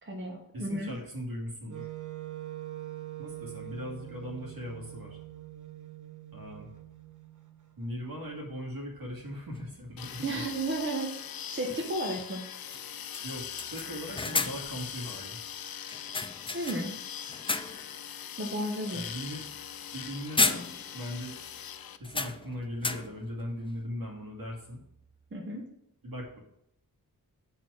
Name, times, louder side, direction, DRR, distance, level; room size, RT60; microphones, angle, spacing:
voice 1, 0.0-0.9 10.2-11.1 11.5-12.4 16.5-17.0 18.4-19.0 25.3-25.6, right 1 dB, 30° right, 0 dB, 1.1 m, -33 dB
voice 2, 0.5-1.9 3.2-5.2 6.3-6.7 7.8-10.5 13.2-15.4 18.9-19.4 19.9-21.4 22.0-24.8 26.0-26.4, equal, 75° right, -1 dB, 2.3 m, -39 dB
Wind instrument woodwind instrument, 1.7-7.7, right 15 dB, 55° right, 0.9 m, -43 dB
sound 1, 9.6-9.7 11.7-11.8 12.2-12.3 12.7-12.9 13.1-14.8 15.9-17.0 17.3-18.0 18.4-18.6 19.9-20.1 20.4-21.1 21.4-21.5 22.0-23.3, left 3 dB, 15° left, 0.3 m, -32 dB
sound 2, 10.0-22.0, left 9 dB, 70° left, 0.5 m, -41 dB
6.6 x 4.5 x 6.3 m, 0.77 s
wide cardioid pair, 125°, 36 cm